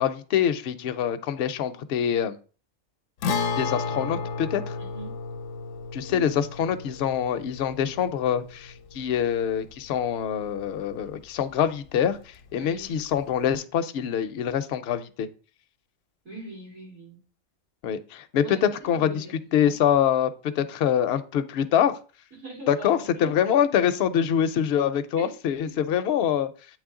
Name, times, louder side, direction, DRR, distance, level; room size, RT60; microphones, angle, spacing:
voice 1, 0.0-2.4 3.6-4.7 5.9-12.2 12.5-15.3 17.8-19.3 19.5-20.3 20.6-22.0 22.7-26.5, left 9 dB, 65° left, 10 dB, 0.7 m, -25 dB
Guitar, 3.2-10.8 11.1-11.2 13.2-13.3, left 4 dB, 85° left, 1.0 m, -33 dB
voice 2, 4.8-5.1 6.1-6.3 12.6-12.9 16.2-17.2 18.4-19.8 22.3-23.3 25.2-25.3, right 3 dB, 70° right, -4 dB, 3.9 m, -42 dB
8.1 x 3.2 x 3.6 m, 0.37 s
omnidirectional pair, 1.3 m